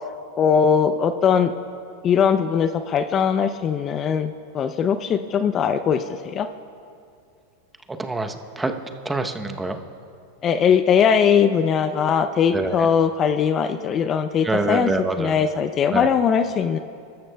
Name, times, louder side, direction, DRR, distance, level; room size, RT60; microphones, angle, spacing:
voice 1, 0.4-1.5 2.0-6.5 10.4-14.9 15.2-16.8, left 7 dB, 35° left, 10 dB, 0.4 m, -20 dB
voice 2, 8.0-8.7 9.0-9.8 12.5-12.9 14.4-15.4 15.9-16.1, right 2 dB, 10° right, 6 dB, 0.8 m, -25 dB
24.5 x 13.5 x 2.3 m, 2.4 s
hypercardioid pair, 115°, 0 cm